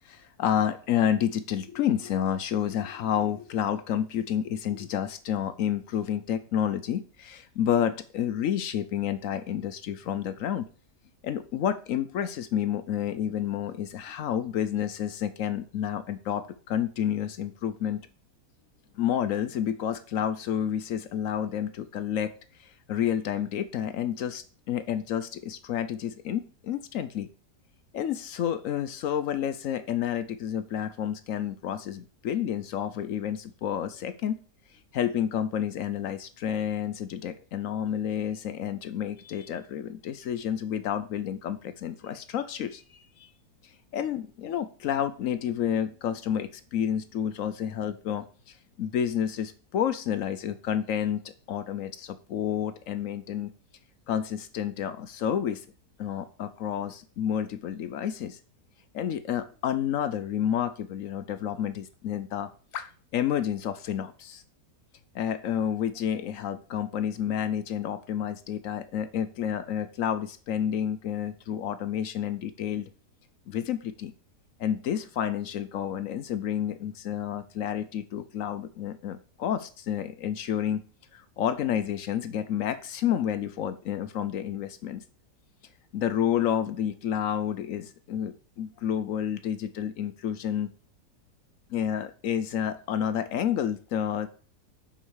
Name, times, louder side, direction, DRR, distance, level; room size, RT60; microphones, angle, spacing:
voice 1, 0.0-10.7 11.2-18.0 19.0-22.3 22.6-27.3 27.9-34.4 34.9-43.3 43.9-51.2 51.5-53.5 54.1-55.7 56.0-58.4 58.9-64.4 65.1-72.9 73.5-74.1 74.6-80.8 81.1-85.0 85.9-90.7 91.7-94.3, left 9 dB, 65° left, 11 dB, 0.8 m, -30 dB
5.7 x 5.0 x 6.3 m, 0.39 s
omnidirectional pair, 1.8 m